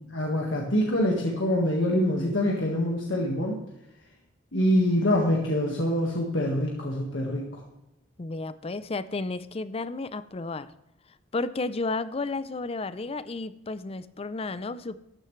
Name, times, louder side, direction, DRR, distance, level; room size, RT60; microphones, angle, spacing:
voice 1, 0.0-3.6 4.5-7.6, left 1 dB, 90° left, -1 dB, 1.7 m, -25 dB
voice 2, 8.2-10.7 11.3-15.0, left 3 dB, 30° left, 15 dB, 0.5 m, -32 dB
13.5 x 9.8 x 3.2 m, 0.87 s
head